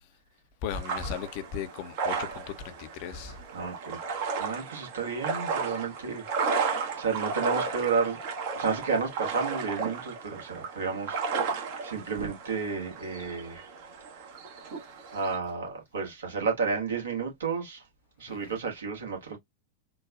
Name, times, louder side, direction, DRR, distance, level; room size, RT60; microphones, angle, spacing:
voice 1, 0.6-3.4 18.3-18.6, left 7 dB, 45° left, 0.5 m, -36 dB
sound 1, 0.7-15.4, right 5 dB, 50° right, 0.9 m, -34 dB
voice 2, 3.5-6.6 7.0-8.2 8.5-11.2 11.8-13.7 15.1-17.8 18.2-19.4, right 5 dB, 65° right, 1.4 m, -31 dB
3.9 x 2.2 x 2.3 m
figure-of-eight pair, 90°, 0 cm